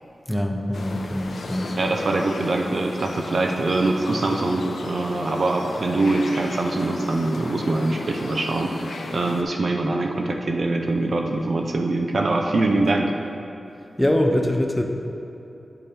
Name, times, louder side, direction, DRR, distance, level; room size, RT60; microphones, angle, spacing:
voice 1, 0.3-1.7 14.0-14.8, left 1 dB, 5° left, 2 dB, 0.6 m, -23 dB
sound 1, 0.7-9.4, left 3 dB, 85° left, 0.5 m, -35 dB
voice 2, 1.8-13.1, right 2 dB, 50° right, 2 dB, 0.5 m, -23 dB
10.5 x 4.3 x 3.4 m, 2.9 s
wide cardioid pair, 120°, 0 cm